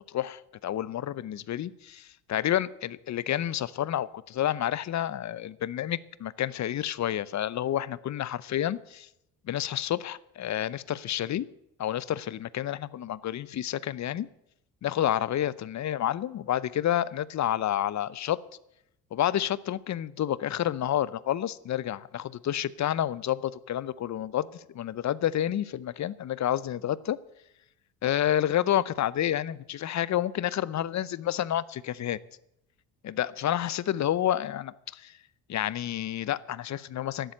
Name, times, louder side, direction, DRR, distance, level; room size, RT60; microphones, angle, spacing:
voice 1, 0.1-9.1 9.5-11.5 11.8-14.3 14.8-18.4 19.1-27.2 28.0-32.2 33.0-35.2 35.5-37.3, left 11 dB, 45° left, 19 dB, 0.7 m, -29 dB
12.5 x 10.5 x 7.9 m, 0.81 s
supercardioid pair, 70°, 40 cm